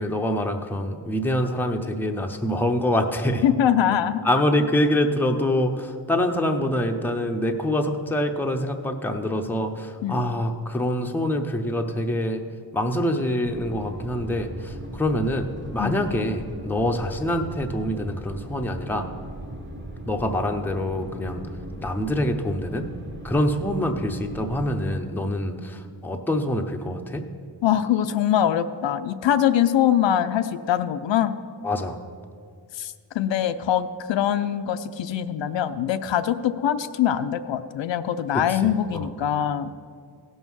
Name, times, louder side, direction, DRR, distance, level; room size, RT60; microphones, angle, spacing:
voice 1, 0.0-3.4 4.2-12.4 12.7-19.1 20.1-21.4 21.8-22.9 23.2-27.2 31.6-32.0 38.3-39.1, left 1 dB, 5° left, 4 dB, 0.6 m, -25 dB
voice 2, 3.4-4.2 10.0-10.2 15.8-16.0 27.6-31.3 32.7-39.7, left 10 dB, 70° left, 10 dB, 0.6 m, -23 dB
sound 1, 13.4-24.9, right 1 dB, 25° right, 1.2 m, -38 dB
16.0 x 5.5 x 6.2 m, 2.1 s
wide cardioid pair, 130°, 47 cm